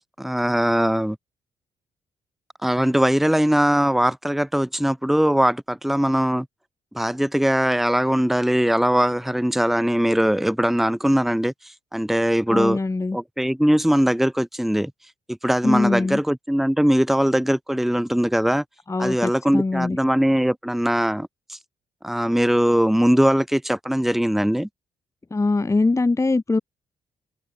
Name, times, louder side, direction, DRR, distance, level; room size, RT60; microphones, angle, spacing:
voice 1, 0.2-1.2 2.6-6.5 6.9-12.8 13.1-14.9 15.3-18.6 19.0-21.6 22.0-24.7, equal, ahead, 1.3 m, -21 dB
voice 2, 12.5-13.2 15.6-16.2 18.9-20.0 25.3-26.6, left 3 dB, 20° left, 0.8 m, -22 dB
hypercardioid pair, 45°, 15 cm